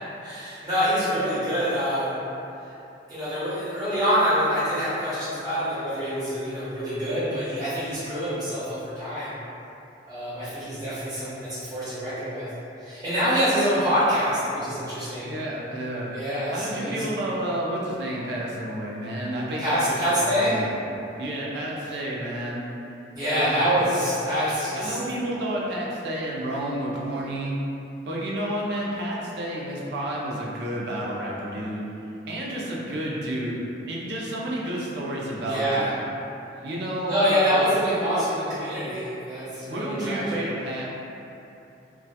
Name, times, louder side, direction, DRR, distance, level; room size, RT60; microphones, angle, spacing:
voice 1, 0.2-2.2 2.6-2.7 3.1-9.3 10.1-12.5 12.8-15.3 16.1-17.0 19.6-20.6 23.1-25.0 35.4-35.9 37.1-40.4, equal, 20° right, -13 dB, 1.0 m, -26 dB
voice 2, 15.2-16.1 16.5-20.7 21.2-22.6 23.3-23.7 24.8-27.6 28.1-31.9 32.3-35.9 36.6-37.6 39.6-40.8, right 1 dB, 60° right, -4 dB, 0.4 m, -30 dB
2.7 x 2.2 x 2.2 m, 2.8 s
head